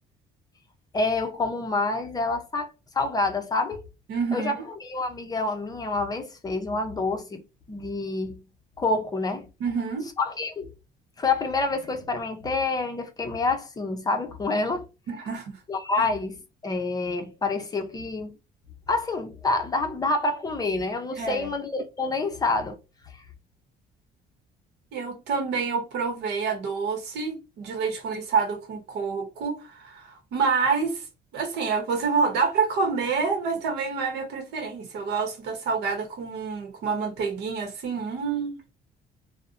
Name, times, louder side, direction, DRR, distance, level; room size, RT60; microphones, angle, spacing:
voice 1, 0.9-2.7 2.9-3.8 4.3-4.5 4.8-7.4 7.7-8.4 8.8-9.5 10.2-10.7 11.2-14.9 15.7-16.4 16.6-18.4 18.9-22.8, left 3 dB, 20° left, 0.5 m, -27 dB
voice 2, 4.1-4.5 9.6-10.1 15.1-15.6 16.0-16.1 21.2-21.4 24.9-31.0 31.3-38.6, right 5 dB, 80° right, 0.8 m, -27 dB
2.5 x 2.0 x 2.4 m
cardioid pair, 110°, 17 cm